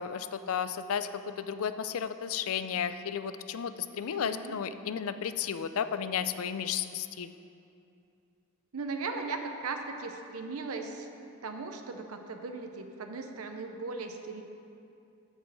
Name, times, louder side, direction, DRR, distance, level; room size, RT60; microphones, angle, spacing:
voice 1, 0.0-7.3, left 7 dB, 70° left, 11 dB, 0.4 m, -33 dB
voice 2, 4.1-4.6 8.7-11.1 11.4-14.4, right 4 dB, 70° right, 5 dB, 0.7 m, -38 dB
8.3 x 6.2 x 7.4 m, 2.6 s
head